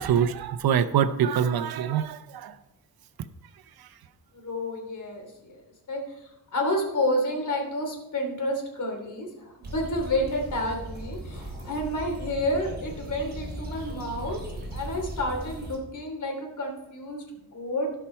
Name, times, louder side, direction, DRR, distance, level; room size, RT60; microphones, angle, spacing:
voice 1, 0.0-2.6 3.8-3.9, right 8 dB, 80° right, 11 dB, 0.8 m, -25 dB
voice 2, 4.3-5.6 5.9-14.4 14.7-17.9, left 1 dB, 55° left, 2 dB, 3.2 m, -30 dB
sound 1, 9.6-15.8, right 1 dB, 25° right, 3.3 m, -38 dB
17.0 x 5.8 x 4.5 m, 0.89 s
wide cardioid pair, 140°, 36 cm